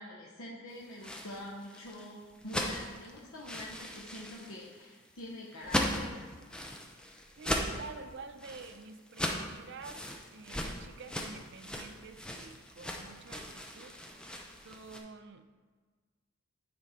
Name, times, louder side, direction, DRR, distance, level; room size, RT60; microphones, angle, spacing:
voice 1, 0.0-6.3, left 1 dB, 90° left, -4 dB, 0.9 m, -45 dB
sound 1, 0.8-15.0, equal, 5° left, 0.6 m, -38 dB
voice 2, 7.4-10.0 10.3-14.0 14.6-15.5, right 4 dB, 55° right, 9 dB, 0.5 m, -48 dB
9.4 x 3.8 x 4.3 m, 1.5 s
head